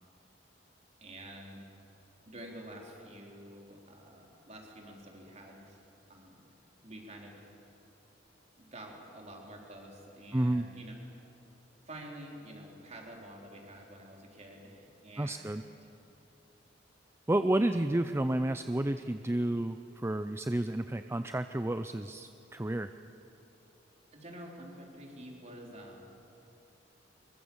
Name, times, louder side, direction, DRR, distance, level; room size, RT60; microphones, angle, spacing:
voice 1, 1.0-1.6 2.3-5.8 6.1-6.5 6.8-7.5 8.6-10.9 11.8-15.7 24.1-26.1, right 1 dB, 40° right, -1 dB, 4.2 m, -48 dB
voice 2, 10.3-10.7 15.2-15.6 17.3-22.9, right 1 dB, 15° right, 9 dB, 0.5 m, -31 dB
23.0 x 23.0 x 7.2 m, 3.0 s
head